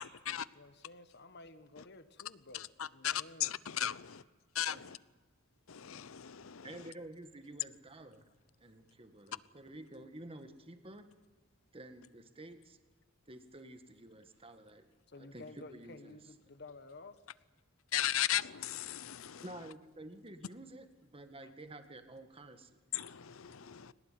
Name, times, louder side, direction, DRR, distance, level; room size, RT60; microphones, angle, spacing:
voice 1, 0.0-0.5 2.5-4.2 4.5-5.0 5.7-6.7 17.9-19.4 22.9-23.9, left 11 dB, 85° left, 18 dB, 0.8 m, -36 dB
voice 2, 0.5-3.5 15.1-17.2 21.4-21.5 23.8-23.9, left 2 dB, 55° left, 11 dB, 1.5 m, -53 dB
voice 3, 6.6-8.2 8.6-11.1 11.7-12.8 13.3-14.8 15.2-16.2 19.4-22.8, right 1 dB, 25° right, 8 dB, 1.7 m, -51 dB
22.5 x 18.5 x 9.7 m, 1.3 s
head